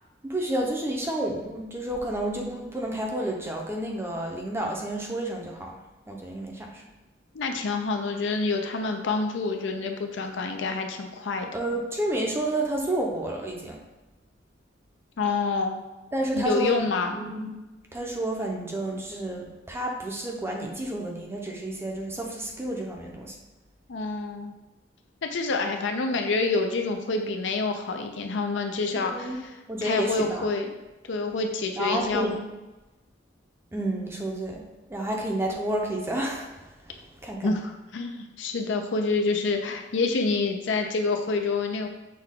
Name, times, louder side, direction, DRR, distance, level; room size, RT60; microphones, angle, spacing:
voice 1, 0.2-5.8 6.1-6.8 11.5-13.8 16.1-17.6 17.9-23.4 29.0-29.4 29.7-30.5 31.8-32.4 33.7-34.6 34.9-36.5 36.9-37.0 37.2-37.5, right 1 dB, 15° right, 0 dB, 0.6 m, -30 dB
voice 2, 7.3-11.5 15.2-15.9 16.4-17.1 23.9-24.5 25.2-30.7 31.1-32.4 37.4-41.9, left 3 dB, 75° left, 4 dB, 0.5 m, -27 dB
6.2 x 2.3 x 3.6 m, 1.1 s
head